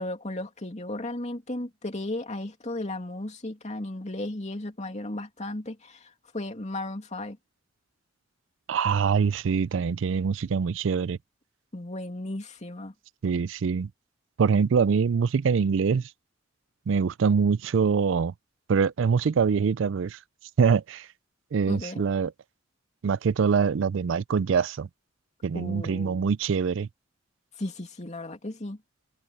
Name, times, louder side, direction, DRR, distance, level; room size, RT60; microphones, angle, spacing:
voice 1, 0.0-7.4 11.7-12.9 21.7-22.0 25.5-26.3 27.6-28.8, left 1 dB, 35° left, 2.7 m, -35 dB
voice 2, 8.7-11.2 13.2-13.9 14.4-16.1 16.9-18.3 18.7-20.2 20.6-21.1 21.5-22.3 23.0-24.9 25.4-26.9, right 6 dB, 70° right, 0.4 m, -24 dB
head